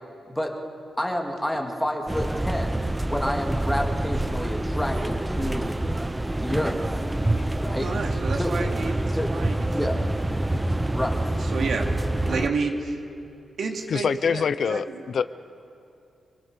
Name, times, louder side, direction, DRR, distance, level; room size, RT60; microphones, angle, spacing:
voice 1, 1.0-5.8 6.3-6.8 7.6-7.9 8.3-8.5 9.1-9.3 9.7-10.1 10.9-11.2, left 1 dB, 5° left, 1 dB, 2.5 m, -29 dB
sound 1, 2.1-12.5, right 1 dB, 10° right, 0.7 m, -26 dB
voice 2, 7.8-9.7 10.1-10.2 10.5-10.6 11.4-11.9 12.3-13.0 13.6-15.0, right 4 dB, 70° right, 2 dB, 2.6 m, -30 dB
voice 3, 13.9-15.2, left 6 dB, 65° left, 13 dB, 0.6 m, -25 dB
26.5 x 21.0 x 6.8 m, 2.5 s
wide cardioid pair, 120°, 0 cm